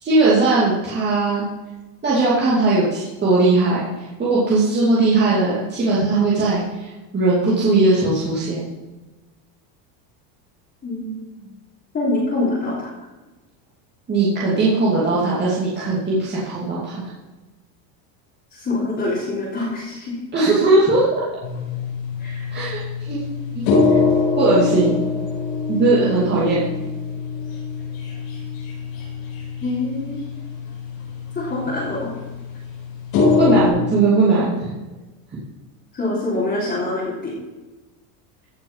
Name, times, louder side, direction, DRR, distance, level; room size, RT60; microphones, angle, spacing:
voice 1, 0.0-1.4 2.0-3.8 4.2-8.6 14.1-17.1 20.3-21.1 22.5-22.8 23.1-23.2 23.5-23.6 24.4-25.0 25.7-26.6 33.4-34.5, right 3 dB, 20° right, -8 dB, 2.8 m, -18 dB
voice 2, 10.8-11.5 11.9-12.9 18.5-20.2 22.2-22.5 29.6-30.2 31.3-32.1 35.9-37.3, left 2 dB, 20° left, -8 dB, 3.5 m, -25 dB
sound 1, 21.4-33.7, left 4 dB, 75° left, 5.1 m, -24 dB
15.5 x 6.8 x 5.7 m, 1.2 s
cardioid pair, 155°, 49 cm